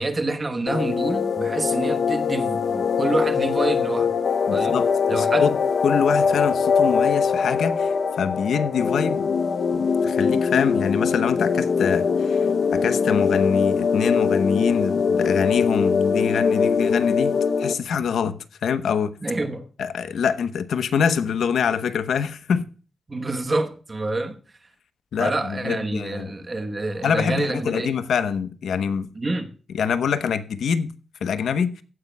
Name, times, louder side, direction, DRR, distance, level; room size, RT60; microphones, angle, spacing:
voice 1, 0.0-4.2 4.5-4.8 5.1-5.5 19.2-19.6 23.1-24.4 25.2-27.9 29.1-29.5, right 2 dB, 20° right, 1.0 m, -27 dB
sound 1, 0.7-17.7, left 5 dB, 50° left, 0.7 m, -22 dB
voice 2, 4.5-9.3 9.7-12.5 12.7-18.3 18.6-19.1 19.8-22.6 25.1-26.3 27.0-29.1 29.7-30.9 31.2-31.7, left 7 dB, 75° left, 0.9 m, -25 dB
15.5 x 9.5 x 2.2 m
wide cardioid pair, 170°, 0 cm